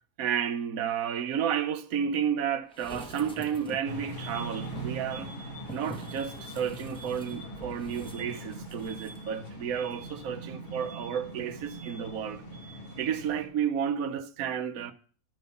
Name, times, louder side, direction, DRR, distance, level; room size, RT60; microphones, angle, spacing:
voice 1, 0.2-5.3 5.7-12.4 13.0-14.9, right 8 dB, 70° right, 1.2 m, -31 dB
sound 1, 2.7-4.0 4.6-9.2 9.5-9.6, right 1 dB, 5° left, 1.0 m, -46 dB
sound 2, 3.8-13.4, right 1 dB, 70° left, 3.8 m, -41 dB
12.5 x 5.4 x 8.0 m
omnidirectional pair, 1.5 m